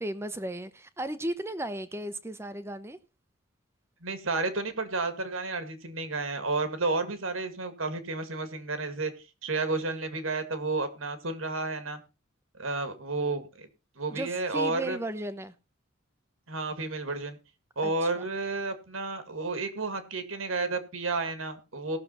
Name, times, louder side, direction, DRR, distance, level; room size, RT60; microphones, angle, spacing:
voice 1, 0.0-3.0 14.1-15.5 17.8-18.2, right 1 dB, 10° right, 0.8 m, -35 dB
voice 2, 4.0-9.1 9.4-12.0 12.6-13.7 14.0-15.0 16.5-17.4 17.8-22.0, right 3 dB, 80° right, 2.0 m, -31 dB
18.0 x 6.7 x 4.1 m
head